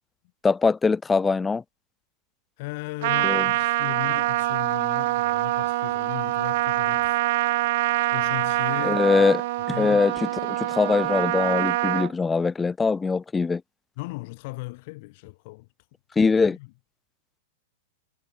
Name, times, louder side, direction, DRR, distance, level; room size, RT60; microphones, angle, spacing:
voice 1, 0.4-1.6 3.2-3.5 8.8-9.4 9.7-13.6 16.2-16.6, left 4 dB, 15° left, 0.4 m, -22 dB
voice 2, 2.6-7.7 8.1-9.1 9.7-10.0 14.0-15.7 16.2-16.7, left 24 dB, 50° left, 2.3 m, -37 dB
Trumpet, 3.0-12.1, right 18 dB, 55° right, 0.4 m, -25 dB
figure-of-eight pair, 100°, 0 cm